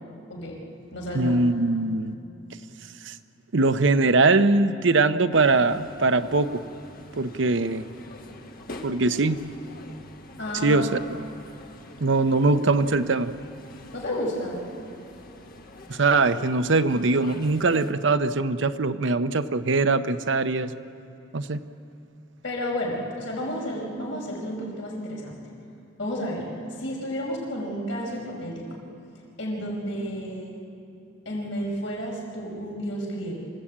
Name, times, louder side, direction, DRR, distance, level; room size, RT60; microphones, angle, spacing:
voice 1, 0.3-0.6 0.9-1.4 10.4-10.9 13.9-14.7 15.3-15.4 22.4-25.4 26.0-26.5 26.8-28.7 29.4-30.6 31.3-33.4, equal, 70° left, -2 dB, 5.3 m, -31 dB
voice 2, 1.1-2.2 3.1-3.2 3.5-6.5 7.2-7.8 8.8-9.4 10.6-11.0 12.0-13.3 15.9-20.7 21.3-21.6, right 3 dB, 65° right, 11 dB, 0.8 m, -22 dB
sound 1, 5.3-17.9, left 1 dB, 50° left, 1.5 m, -45 dB
26.5 x 15.5 x 8.7 m, 2.6 s
head